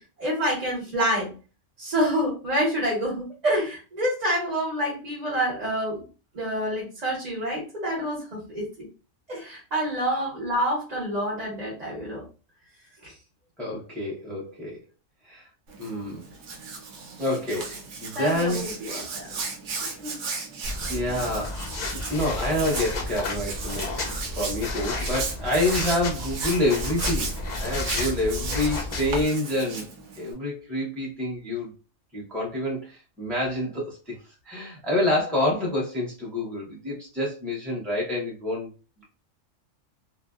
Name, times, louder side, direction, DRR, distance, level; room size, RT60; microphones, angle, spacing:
voice 1, 0.2-1.3 1.8-6.0 6.3-8.9 9.3-12.2 13.0-13.1 18.1-19.3 20.0-20.1, equal, 35° right, -4 dB, 0.8 m, -27 dB
voice 2, 13.6-14.8 15.2-15.5 15.8-16.2 17.2-18.6 20.9-21.6 21.9-24.0 24.4-27.4 27.6-29.9 30.2-31.7 32.1-34.2 34.4-38.7, left 1 dB, ahead, -4 dB, 0.5 m, -27 dB
Hands, 15.7-30.3, right 4 dB, 70° right, 0.9 m, -35 dB
sound 1, 20.6-29.2, left 2 dB, 85° left, 0.3 m, -32 dB
2.6 x 2.0 x 2.3 m, 0.34 s
omnidirectional pair, 1.4 m